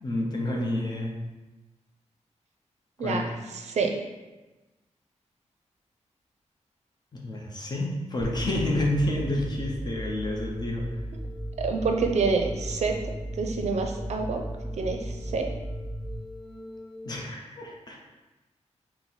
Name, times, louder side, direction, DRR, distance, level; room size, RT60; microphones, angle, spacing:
voice 1, 0.0-1.1 3.0-3.2 7.1-10.9 17.0-18.0, left 1 dB, 35° left, -1 dB, 0.7 m, -29 dB
voice 2, 3.5-3.9 11.6-13.0 13.4-14.4 14.7-15.5, right 4 dB, 65° right, 3 dB, 0.5 m, -27 dB
sound 1, 8.2-17.2, equal, ahead, 0.3 m, -36 dB
4.2 x 2.1 x 4.0 m, 1.1 s
wide cardioid pair, 140°, 12 cm